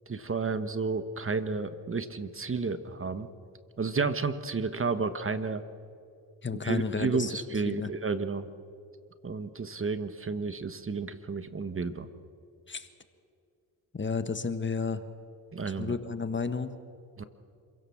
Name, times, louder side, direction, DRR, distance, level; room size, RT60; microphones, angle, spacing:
voice 1, 0.1-3.3 3.8-5.6 6.6-8.5 9.2-12.1 15.5-15.9 17.2-17.3, right 4 dB, 35° right, 11 dB, 1.4 m, -31 dB
voice 2, 6.4-7.9 12.7-12.9 13.9-15.0 15.8-16.7, left 4 dB, 30° left, 10 dB, 1.4 m, -32 dB
27.0 x 17.0 x 7.2 m, 2.4 s
cardioid pair, 70°, 39 cm